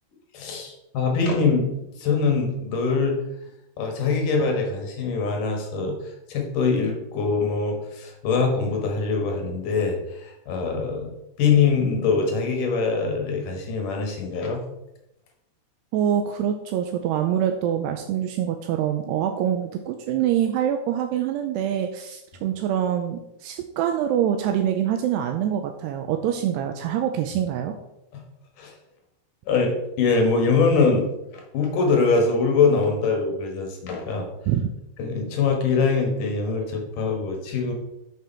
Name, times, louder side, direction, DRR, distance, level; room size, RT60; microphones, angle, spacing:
voice 1, 0.3-3.2 3.8-14.6 28.1-28.2 28.6-28.7 29.5-34.3 35.0-37.7, left 4 dB, 60° left, 2 dB, 2.5 m, -23 dB
voice 2, 15.9-27.7 34.5-34.7, right 10 dB, 85° right, 5 dB, 2.5 m, -25 dB
9.3 x 6.9 x 4.4 m, 0.87 s
omnidirectional pair, 5.1 m